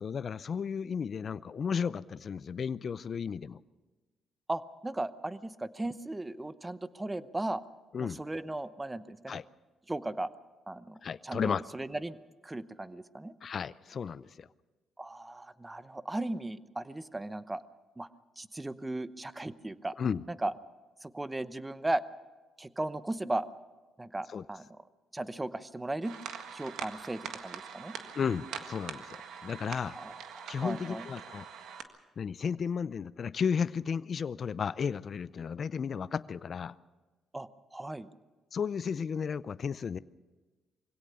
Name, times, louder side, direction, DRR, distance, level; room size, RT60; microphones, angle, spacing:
voice 1, 0.0-3.6 7.9-8.2 9.3-9.4 11.0-11.6 13.4-14.5 20.0-20.2 24.3-24.4 28.2-29.9 30.5-31.4 32.2-36.7 38.5-40.0, left 6 dB, 50° left, 16 dB, 0.5 m, -33 dB
voice 2, 4.5-7.6 8.0-9.4 9.9-10.3 10.7-11.0 11.2-12.2 12.4-13.3 15.0-17.6 18.0-18.1 18.4-19.9 20.3-20.5 21.0-22.0 22.6-23.4 24.0-24.7 25.1-26.1 26.5-27.9 29.9-31.1 37.3-38.1, right 2 dB, 15° right, 14 dB, 0.9 m, -36 dB
sound 1, 26.0-31.8, right 7 dB, 80° right, 1.6 m, -43 dB
23.5 x 17.0 x 6.9 m, 1.3 s
cardioid pair, 90°, 0 cm